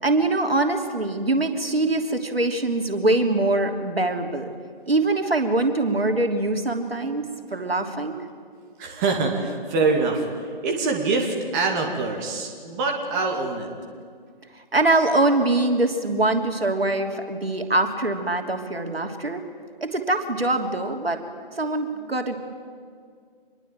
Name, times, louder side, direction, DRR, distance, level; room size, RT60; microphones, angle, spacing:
voice 1, 0.0-4.5 4.9-8.2 14.5-19.4 19.8-21.2 21.6-22.3, right 2 dB, 80° right, 5 dB, 3.2 m, -23 dB
voice 2, 8.8-13.7, right 3 dB, 20° right, 1 dB, 2.6 m, -25 dB
26.5 x 22.0 x 9.1 m, 2.1 s
figure-of-eight pair, 150°, 29 cm